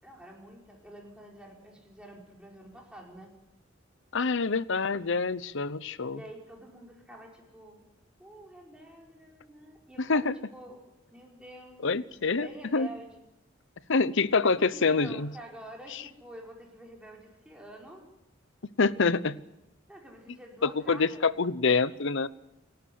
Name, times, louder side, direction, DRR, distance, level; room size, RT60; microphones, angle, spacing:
voice 1, 0.0-3.3 6.1-7.9 8.2-10.8 11.1-11.9 12.2-13.2 14.4-18.0 19.9-21.3, right 1 dB, 5° right, -2 dB, 5.4 m, -48 dB
voice 2, 4.1-6.2 10.0-10.4 11.8-12.9 13.9-15.3 15.9-16.0 18.8-19.4 20.6-22.3, left 4 dB, 65° left, 17 dB, 0.9 m, -26 dB
28.5 x 13.0 x 9.5 m, 0.90 s
head